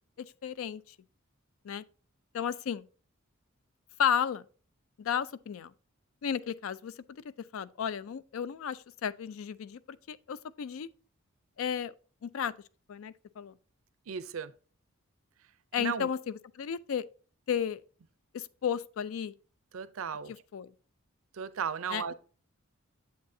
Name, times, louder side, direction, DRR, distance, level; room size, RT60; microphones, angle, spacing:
voice 1, 0.2-1.0 1.6-1.8 2.3-2.9 4.0-4.4 5.0-5.7 6.2-7.2 7.5-10.9 11.6-11.9 12.2-12.5 12.9-13.5 15.7-17.0 17.5-17.8 18.3-19.3 20.5-20.7 21.9-22.1, left 8 dB, 70° left, 0.4 m, -33 dB
voice 2, 14.1-14.5 15.8-16.1 19.7-20.3 21.3-22.1, right 7 dB, 70° right, 0.5 m, -35 dB
7.8 x 6.5 x 2.7 m
head